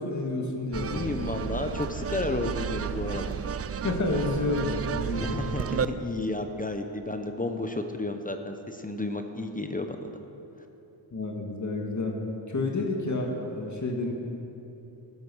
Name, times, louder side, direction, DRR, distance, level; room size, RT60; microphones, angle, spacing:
voice 1, 0.0-1.1 3.8-5.4 11.1-12.2 12.5-14.1, left 2 dB, 40° left, 1 dB, 1.9 m, -30 dB
sound 1, 0.7-5.9, right 7 dB, 35° right, 0.4 m, -32 dB
voice 2, 0.9-3.3 5.1-10.1, left 2 dB, 20° left, 6 dB, 0.8 m, -32 dB
14.0 x 11.5 x 6.2 m, 2.9 s
cardioid pair, 95°, 46 cm